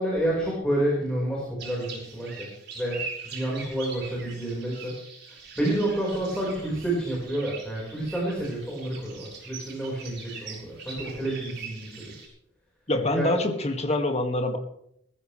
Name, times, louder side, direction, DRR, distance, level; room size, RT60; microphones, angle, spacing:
voice 1, 0.0-4.9 5.6-12.3 13.1-13.3, right 1 dB, 5° left, -5 dB, 5.0 m, -29 dB
sound 1, 1.6-12.3, right 5 dB, 60° right, 6.8 m, -42 dB
voice 2, 12.9-14.6, left 1 dB, 35° left, 5 dB, 2.2 m, -25 dB
20.5 x 14.5 x 3.3 m, 0.71 s
head